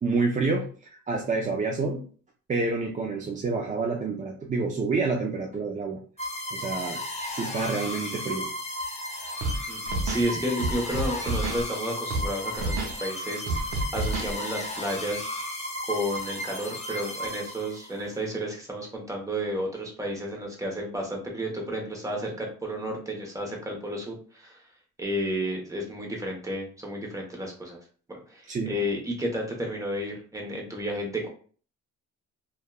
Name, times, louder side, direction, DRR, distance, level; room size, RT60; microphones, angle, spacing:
voice 1, 0.0-2.0 2.5-6.0 6.5-8.5 28.5-28.7, right 3 dB, 25° right, 1 dB, 0.4 m, -28 dB
sound 1, 6.2-18.0, left 1 dB, 20° left, 0.7 m, -34 dB
Scratching (performance technique), 9.4-9.6 9.9-10.3 10.6-11.6 12.1-12.3 12.6-12.9 13.5-14.3, right 2 dB, 80° right, 0.7 m, -29 dB
voice 2, 9.7-15.2 15.9-24.6 25.0-27.8 28.1-31.3, equal, 10° right, 0 dB, 1.0 m, -32 dB
2.7 x 2.3 x 2.3 m, 0.41 s
cardioid pair, 90°, 30 cm